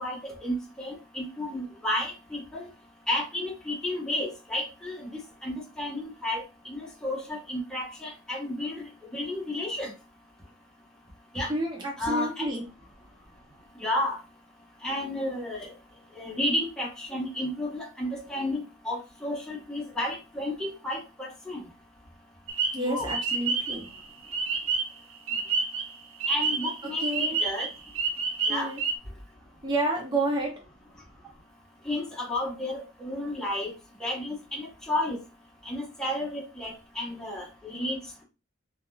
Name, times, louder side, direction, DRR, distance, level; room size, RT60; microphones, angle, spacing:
voice 1, 0.0-2.7 3.1-9.9 11.3-11.5 12.0-12.4 13.8-14.2 14.8-15.7 16.1-21.6 22.8-23.1 26.3-27.7 28.5-28.7 31.8-33.7 34.0-35.2 35.6-38.2, left 1 dB, 5° left, -4 dB, 0.9 m, -32 dB
voice 2, 11.5-12.6 22.7-23.9 26.8-27.4 28.5-28.8 29.6-30.5, right 1 dB, 20° right, 0 dB, 0.5 m, -29 dB
sound 1, 22.5-25.0 25.3-29.0, right 4 dB, 65° right, 0.5 m, -29 dB
3.5 x 2.4 x 2.3 m, 0.30 s
head